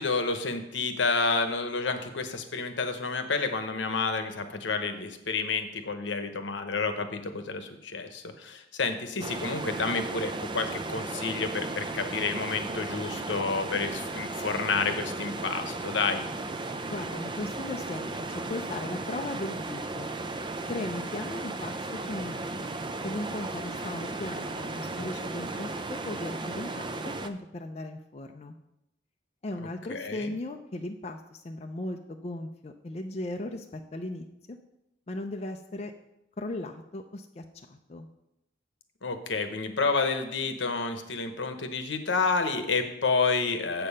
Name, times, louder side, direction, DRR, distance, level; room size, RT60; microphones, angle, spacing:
voice 1, 0.0-16.2 29.9-30.3 39.0-43.9, left 4 dB, 75° left, 7 dB, 1.0 m, -29 dB
sound 1, 9.2-27.3, right 2 dB, 25° right, 0.4 m, -35 dB
voice 2, 16.9-20.1 20.7-21.8 22.1-22.7 23.0-28.6 29.4-34.6 35.1-35.9 36.4-38.1, left 2 dB, 35° left, 4 dB, 0.5 m, -37 dB
7.6 x 6.9 x 5.5 m, 0.84 s
head